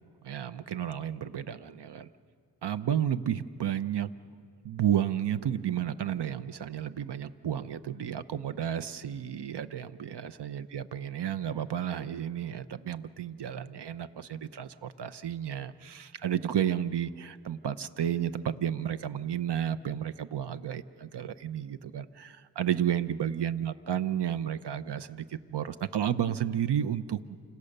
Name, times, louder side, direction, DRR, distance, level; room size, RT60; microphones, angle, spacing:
voice 1, 0.2-2.1 2.6-4.1 4.6-27.2, right 10 dB, 75° right, 13 dB, 0.9 m, -32 dB
28.5 x 26.5 x 6.7 m, 2.2 s
wide cardioid pair, 110°, 41 cm